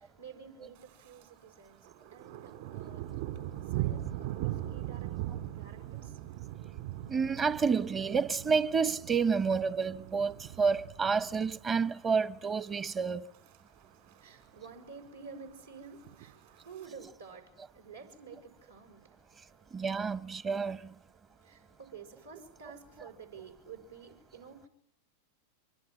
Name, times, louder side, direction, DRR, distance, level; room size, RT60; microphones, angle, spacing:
voice 1, 0.0-3.1 3.7-5.1 5.5-6.1 13.7-20.2 20.7-24.7, right 5 dB, 75° right, 6.1 m, -51 dB
Thunder, 0.8-1.3 1.6-11.9 12.3-12.7 13.1-13.6 13.8-13.9 14.1-14.2 14.6-15.1 15.9-16.9, right 14 dB, 55° right, 4.8 m, -40 dB
voice 2, 7.1-13.3 19.7-20.9, right 5 dB, 20° right, 1.1 m, -29 dB
25.5 x 24.0 x 9.4 m
figure-of-eight pair, 90°, 0 cm